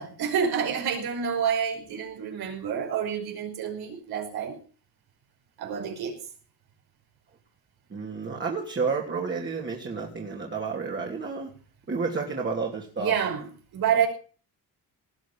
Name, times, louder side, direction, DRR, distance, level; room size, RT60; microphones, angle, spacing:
voice 1, 0.0-4.6 5.6-6.2 13.0-14.1, right 7 dB, 75° right, 5.5 m, -28 dB
voice 2, 7.9-11.5 11.9-13.2, right 4 dB, 30° right, 3.1 m, -30 dB
19.0 x 6.3 x 8.9 m
cardioid pair, 120°, 38 cm